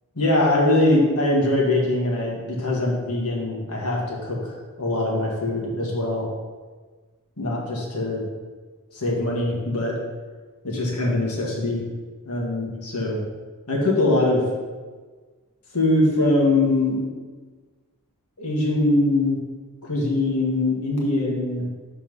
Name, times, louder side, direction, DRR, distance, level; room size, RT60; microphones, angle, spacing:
voice 1, 0.2-6.3 7.4-8.2 8.9-10.0 10.6-11.8 12.3-13.2 13.7-14.4 15.7-17.0 18.4-19.4 19.8-21.7, left 2 dB, 80° left, -3 dB, 1.8 m, -22 dB
5.5 x 4.5 x 6.1 m, 1.4 s
head